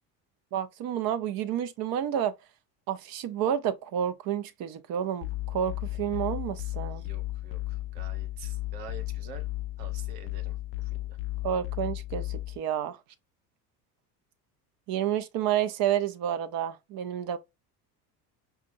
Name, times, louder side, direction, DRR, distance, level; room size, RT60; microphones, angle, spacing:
voice 1, 0.5-2.3 2.9-7.0 11.4-13.0 14.9-17.4, right 10 dB, 45° right, 0.6 m, -30 dB
sound 1, 5.2-12.6, left 18 dB, 30° left, 0.4 m, -34 dB
voice 2, 6.9-9.5 9.8-10.6 10.8-11.2, right 5 dB, 75° right, 1.0 m, -47 dB
5.1 x 2.3 x 2.7 m
hypercardioid pair, 70°, 49 cm